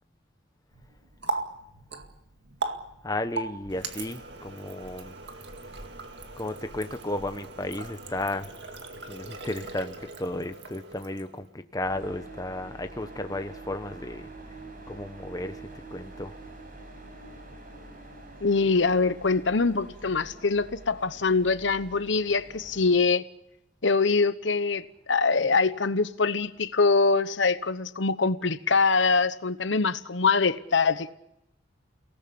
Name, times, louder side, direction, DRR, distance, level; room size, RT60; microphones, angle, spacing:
Water tap faucet, 0.7-11.5, right 3 dB, 60° right, 2.1 m, -39 dB
voice 1, 3.0-5.1 6.4-8.5 9.1-14.3 14.9-16.3, left 1 dB, 20° left, 1.0 m, -34 dB
sound 1, 11.8-23.0, right 2 dB, 45° right, 5.4 m, -46 dB
voice 2, 18.4-23.2 23.8-31.1, left 4 dB, 70° left, 1.0 m, -24 dB
30.0 x 18.5 x 7.0 m
head